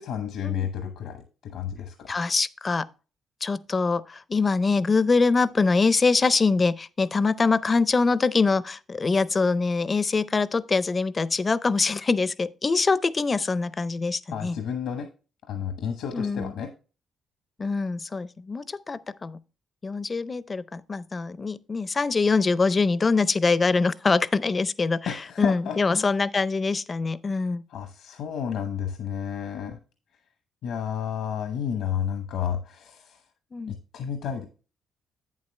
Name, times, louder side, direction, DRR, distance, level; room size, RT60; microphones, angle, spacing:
voice 1, 0.0-2.2 14.3-15.1 15.5-16.7 25.1-26.1 27.7-29.8 30.6-33.2 33.7-34.5, left 8 dB, 80° left, 0.9 m, -31 dB
voice 2, 2.1-2.9 3.4-14.6 16.1-16.5 17.6-19.4 19.8-25.0 25.4-27.6 33.5-33.8, left 4 dB, 30° left, 0.4 m, -24 dB
8.3 x 7.4 x 3.2 m
cardioid pair, 90°, 0 cm